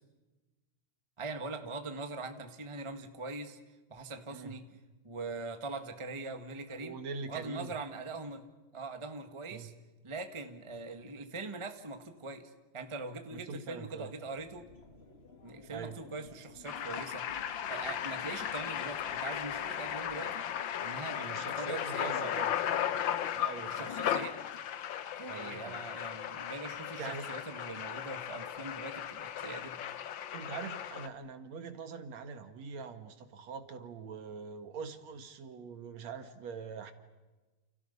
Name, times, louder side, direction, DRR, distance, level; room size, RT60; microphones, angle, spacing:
voice 1, 1.2-3.6 3.9-4.7 5.0-7.0 7.3-8.4 8.7-9.7 10.0-14.7 15.4-17.3 17.7-20.5 20.8-22.3 23.6-24.4 25.2-29.8, right 3 dB, 20° right, 7 dB, 0.9 m, -42 dB
voice 2, 6.8-7.8 9.5-9.7 13.3-14.1 15.7-16.0 21.1-22.5 23.4-24.0 25.3-25.8 27.0-27.3 30.3-36.9, right 5 dB, 60° right, 9 dB, 2.8 m, -43 dB
sound 1, 14.3-20.6, left 4 dB, 30° left, 1.1 m, -56 dB
sound 2, 16.6-31.1, left 10 dB, 85° left, 1.0 m, -36 dB
29.5 x 29.5 x 5.5 m, 1.2 s
omnidirectional pair, 3.6 m